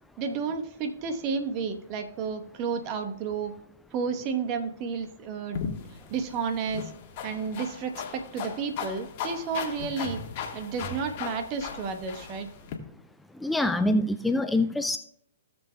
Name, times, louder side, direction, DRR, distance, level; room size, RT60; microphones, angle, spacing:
voice 1, 0.2-3.5 3.9-5.6 6.1-6.9 7.2-10.2 10.5-12.5, right 5 dB, 35° right, 6 dB, 1.1 m, -31 dB
sound 1, 5.5-12.8, left 6 dB, 45° left, 1.4 m, -37 dB
voice 2, 13.4-15.0, left 1 dB, 5° left, 9 dB, 0.3 m, -25 dB
16.5 x 7.0 x 2.3 m, 0.68 s
hypercardioid pair, 120°, 0 cm